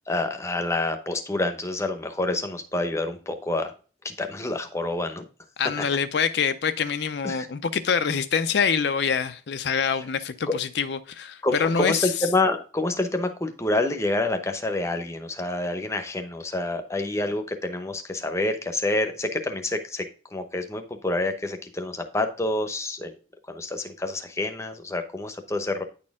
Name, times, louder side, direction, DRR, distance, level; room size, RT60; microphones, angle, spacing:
voice 1, 0.1-3.7 4.0-5.2 7.2-7.5 11.4-23.1 23.5-25.8, left 2 dB, 15° left, 0.8 m, -27 dB
voice 2, 5.6-12.3, left 6 dB, 65° left, 0.5 m, -25 dB
9.6 x 4.3 x 3.6 m
head